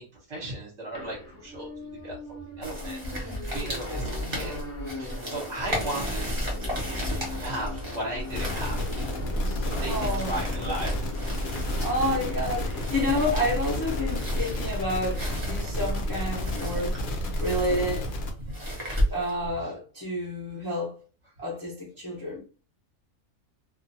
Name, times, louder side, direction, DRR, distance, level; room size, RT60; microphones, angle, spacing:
voice 1, 0.0-4.5 4.8-6.7 7.3-8.9 9.6-11.1 17.9-18.0 18.4-18.9 19.6-19.7, right 1 dB, 55° right, 1.2 m, -37 dB
sound 1, 0.9-15.7, left 2 dB, 50° left, 0.8 m, -40 dB
sound 2, 2.6-19.5, equal, 25° right, 0.7 m, -34 dB
sound 3, 8.3-18.3, left 1 dB, 70° left, 0.5 m, -31 dB
voice 2, 9.8-10.4 11.8-17.0 17.4-18.1 19.1-21.0 21.4-22.4, left 1 dB, 20° left, 0.7 m, -29 dB
2.6 x 2.4 x 2.6 m
omnidirectional pair, 1.5 m